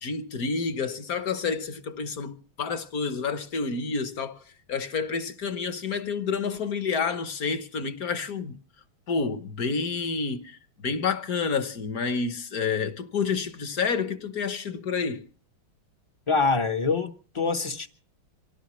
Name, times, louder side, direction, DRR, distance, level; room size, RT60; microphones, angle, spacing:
voice 1, 0.0-4.4 4.7-8.6 9.1-15.2, left 5 dB, 50° left, 1.3 m, -29 dB
voice 2, 16.3-17.9, left 4 dB, 30° left, 0.5 m, -25 dB
25.5 x 17.5 x 3.1 m
omnidirectional pair, 2.3 m